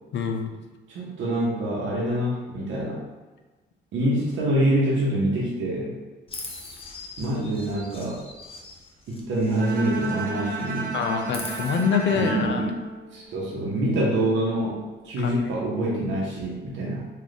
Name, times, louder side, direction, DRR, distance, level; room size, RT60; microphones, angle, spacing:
voice 1, 0.1-0.5 10.9-12.6 15.2-15.4, left 6 dB, 65° left, 4 dB, 0.5 m, -25 dB
voice 2, 0.9-3.0 3.9-5.9 7.2-8.2 9.1-10.9 12.1-12.7 13.1-17.1, right 1 dB, 75° right, -4 dB, 0.9 m, -26 dB
Chirp tweet, 6.3-10.3 10.6-11.8, left 3 dB, 30° left, 0.8 m, -41 dB
Bowed string instrument, 9.6-13.7, right 2 dB, 45° right, 0.8 m, -33 dB
3.2 x 2.4 x 3.9 m, 1.2 s
cardioid pair, 90°, 20 cm